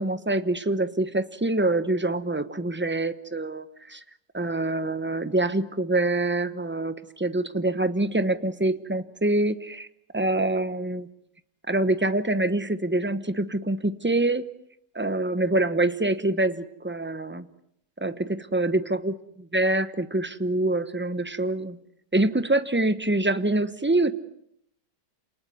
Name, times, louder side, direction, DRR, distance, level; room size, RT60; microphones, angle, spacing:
voice 1, 0.0-4.0 4.3-9.9 10.1-11.1 11.7-14.5 14.9-17.5 18.0-21.8 22.1-24.1, right 2 dB, 10° right, 12 dB, 0.7 m, -25 dB
28.5 x 20.0 x 9.5 m, 0.74 s
omnidirectional pair, 1.9 m